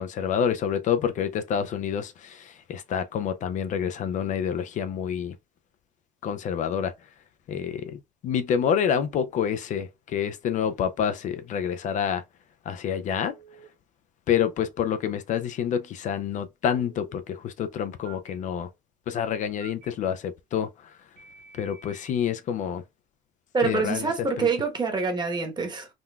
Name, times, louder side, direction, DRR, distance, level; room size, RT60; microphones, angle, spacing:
voice 1, 0.0-5.3 6.2-6.9 7.5-12.2 12.7-13.3 14.3-18.7 19.1-20.9 21.6-22.8 23.6-24.5, left 8 dB, 45° left, 0.4 m, -28 dB
Telephone, 13.1-13.7 16.6-17.2 18.0-18.3 19.6-19.9 21.2-22.2, right 6 dB, 65° right, 1.2 m, -50 dB
voice 2, 23.5-25.9, right 4 dB, 25° right, 1.1 m, -26 dB
3.7 x 2.2 x 2.3 m
supercardioid pair, 90°, 17 cm